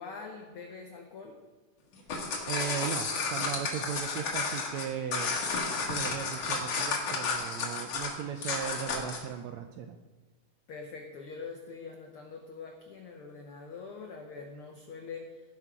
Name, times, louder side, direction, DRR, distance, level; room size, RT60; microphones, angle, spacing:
voice 1, 0.0-1.4 10.7-15.4, left 4 dB, 85° left, 3 dB, 1.2 m, -44 dB
sound 1, 1.9-9.3, left 4 dB, 55° left, 2.6 m, -32 dB
voice 2, 2.5-5.4 5.8-10.0, right 8 dB, 80° right, 6 dB, 1.6 m, -37 dB
17.0 x 5.8 x 4.7 m, 1.3 s
omnidirectional pair, 3.7 m